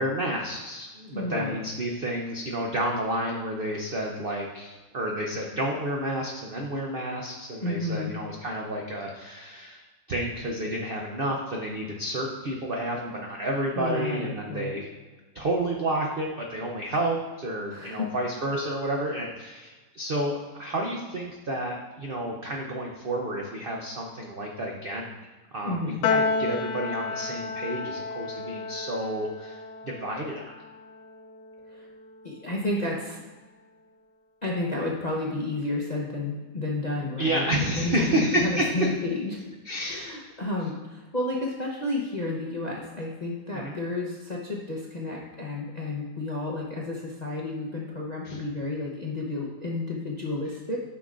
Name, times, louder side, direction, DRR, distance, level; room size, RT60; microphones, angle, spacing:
voice 1, 0.0-9.8 10.1-14.9 15.3-25.1 25.5-30.4 37.2-38.9 39.6-40.2 43.5-43.8 48.2-48.4, right 1 dB, 65° right, 0 dB, 0.5 m, -30 dB
voice 2, 1.1-1.6 7.6-8.1 13.8-14.8 17.7-18.1 25.6-26.0 31.7-31.9 32.2-33.2 34.4-39.4 39.9-50.8, left 2 dB, 45° left, -2 dB, 0.5 m, -31 dB
Piano, 26.0-32.5, left 4 dB, 70° left, 1.1 m, -32 dB
9.5 x 6.0 x 2.5 m, 1.3 s
omnidirectional pair, 1.9 m